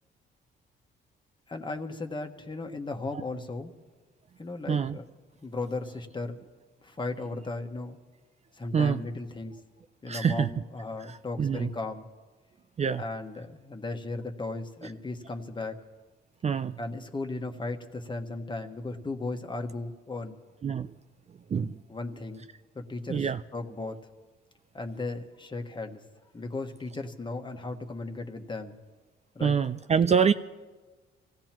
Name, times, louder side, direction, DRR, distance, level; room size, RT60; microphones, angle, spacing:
voice 1, 1.5-3.7 4.4-5.0 5.4-6.4 6.8-8.0 8.5-9.6 10.0-12.1 13.0-15.8 16.8-20.4 21.9-22.5 22.7-24.0 24.7-26.0 26.3-28.8 29.3-29.5, left 2 dB, 25° left, 4 dB, 1.4 m, -36 dB
voice 2, 4.7-5.0 8.7-9.0 10.1-10.5 11.0-11.7 12.8-13.0 16.4-16.8 20.6-20.9 21.5-21.8 23.1-23.4 29.4-30.3, right 7 dB, 35° right, 10 dB, 0.5 m, -26 dB
26.5 x 16.5 x 3.0 m, 1.3 s
cardioid pair, 90°, 20 cm